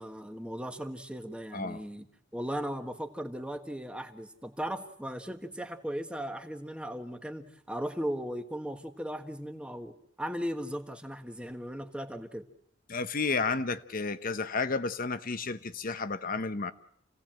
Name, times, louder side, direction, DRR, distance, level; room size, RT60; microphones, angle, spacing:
voice 1, 0.0-2.1 2.3-12.4, equal, 5° right, 7 dB, 1.4 m, -37 dB
voice 2, 1.5-1.8 12.9-16.7, left 4 dB, 50° left, 11 dB, 1.0 m, -32 dB
28.5 x 17.0 x 7.6 m, 0.72 s
head